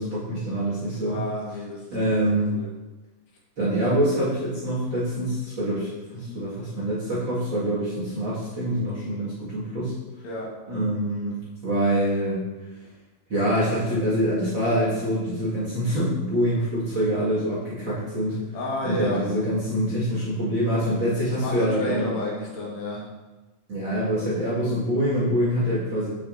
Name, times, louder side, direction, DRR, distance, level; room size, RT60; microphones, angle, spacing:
voice 1, 0.0-1.2 1.9-2.5 3.6-9.9 10.7-11.4 11.6-12.4 13.3-18.4 18.8-22.1 23.7-26.1, equal, 40° right, -7 dB, 1.8 m, -25 dB
voice 2, 1.0-1.9 2.1-2.7 6.1-6.5 10.2-10.5 18.5-19.2 21.4-23.0, left 1 dB, 60° left, -4 dB, 2.2 m, -32 dB
8.0 x 7.0 x 2.6 m, 1.2 s
omnidirectional pair, 4.3 m